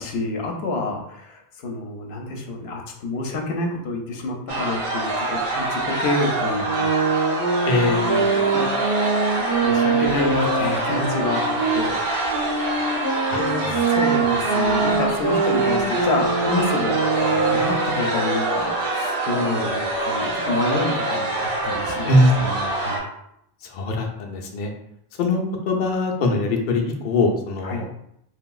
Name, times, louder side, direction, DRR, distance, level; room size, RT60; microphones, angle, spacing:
voice 1, 0.0-7.3 7.6-8.7 9.6-12.0 13.3-23.0 27.6-27.8, left 2 dB, 85° left, 1 dB, 0.8 m, -28 dB
sound 1, 4.5-23.0, right 2 dB, 65° right, 1.0 m, -25 dB
sound 2, 6.6-11.8 12.3-17.9, right 4 dB, 25° right, 0.7 m, -23 dB
voice 2, 7.7-8.0 13.3-13.8 22.1-22.4 23.7-24.7 25.2-28.0, left 2 dB, 60° left, 1 dB, 0.6 m, -22 dB
3.2 x 2.8 x 2.3 m, 0.75 s
omnidirectional pair, 1.0 m